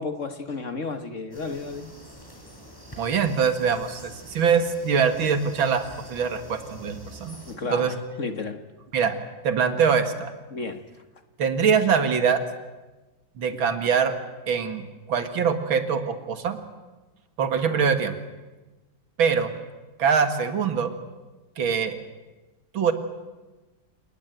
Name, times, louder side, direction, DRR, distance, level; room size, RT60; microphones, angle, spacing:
voice 1, 0.0-1.9 7.5-8.6 10.5-10.8 17.6-17.9, left 4 dB, 40° left, 9 dB, 1.5 m, -33 dB
sound 1, 1.3-7.6, equal, 10° left, 5.5 m, -46 dB
voice 2, 3.0-7.4 7.7-7.9 8.9-9.2 9.4-10.3 11.4-12.4 13.4-14.2 14.5-16.6 17.4-18.1 19.2-19.5 20.0-20.9 21.6-22.0 22.7-22.9, right 6 dB, 80° right, 9 dB, 2.7 m, -23 dB
28.0 x 19.0 x 9.3 m, 1.2 s
omnidirectional pair, 2.2 m